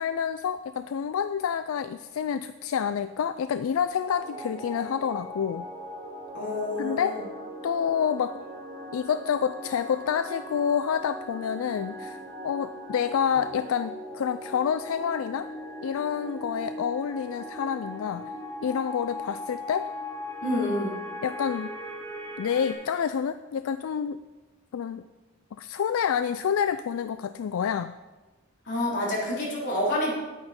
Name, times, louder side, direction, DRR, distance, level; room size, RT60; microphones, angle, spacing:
voice 1, 0.0-5.6 6.8-7.2 7.6-8.4 8.9-15.5 15.8-18.3 18.6-19.9 21.2-21.7 22.4-24.2 24.7-25.0 25.6-27.9, left 7 dB, 80° left, 11 dB, 0.3 m, -28 dB
sound 1, 4.1-22.7, left 1 dB, 25° right, 2.3 m, -39 dB
voice 2, 6.3-7.2 20.4-21.0 28.7-30.1, left 1 dB, 55° left, -5 dB, 3.6 m, -28 dB
9.9 x 9.0 x 4.3 m, 1.2 s
head